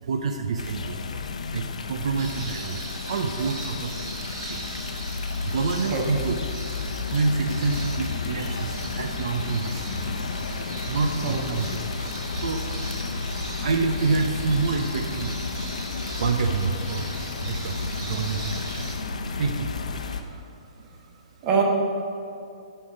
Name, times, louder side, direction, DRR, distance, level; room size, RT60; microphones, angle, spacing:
voice 1, 0.0-1.0 1.5-4.7 5.4-6.4 7.1-10.0 10.9-12.0 12.4-12.6 13.4-15.4 16.2-17.1 17.4-19.0 19.4-19.9, right 4 dB, 65° right, 5 dB, 0.6 m, -27 dB
sound 1, 0.6-20.2, left 4 dB, 85° left, 0.8 m, -32 dB
sound 2, 2.2-18.9, right 2 dB, 40° right, 2.0 m, -40 dB
voice 2, 5.9-6.3 11.2-11.5 21.4-21.6, right 5 dB, 25° right, -1 dB, 1.3 m, -24 dB
12.5 x 4.5 x 5.0 m, 2.6 s
hypercardioid pair, 155°, 4 cm